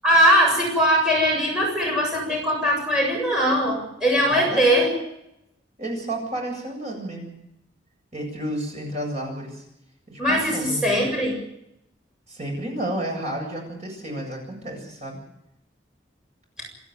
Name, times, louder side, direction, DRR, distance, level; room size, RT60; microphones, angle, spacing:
voice 1, 0.0-4.9 10.2-11.4 16.6-16.7, equal, 5° right, -3 dB, 7.4 m, -20 dB
voice 2, 4.2-5.0 5.8-7.3 8.1-9.6 10.1-11.0 12.3-15.2, right 1 dB, 35° right, 1 dB, 7.9 m, -31 dB
28.5 x 12.5 x 9.6 m, 0.79 s
head